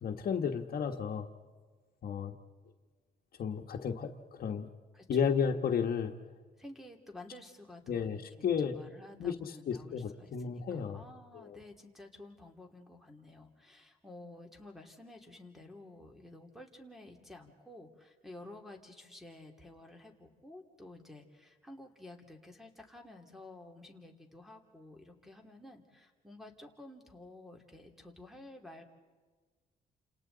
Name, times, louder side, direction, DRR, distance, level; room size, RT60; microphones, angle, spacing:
voice 1, 0.0-1.3 2.0-2.3 3.4-4.7 5.1-6.1 7.9-8.9 9.2-11.0 11.3-11.6, left 7 dB, 60° left, 5 dB, 1.3 m, -33 dB
voice 2, 4.9-5.5 6.6-8.2 8.6-28.8, left 2 dB, ahead, 3 dB, 2.7 m, -52 dB
29.5 x 27.5 x 4.0 m, 1.4 s
cardioid pair, 105°, 17 cm